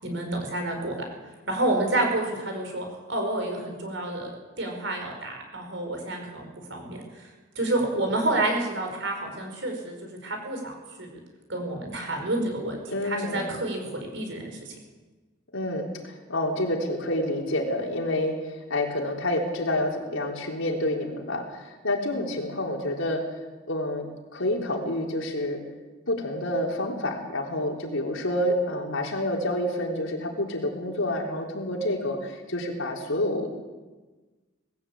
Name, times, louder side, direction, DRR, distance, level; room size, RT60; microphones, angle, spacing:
voice 1, 0.0-1.0 1.5-4.3 4.6-7.3 7.6-11.2 11.5-14.7, right 2 dB, 65° right, 3 dB, 5.2 m, -29 dB
voice 2, 12.9-13.5 15.5-23.2 23.7-24.1 24.3-25.6 26.1-33.5, left 1 dB, 90° left, 0 dB, 4.0 m, -28 dB
20.0 x 15.5 x 8.7 m, 1.3 s
head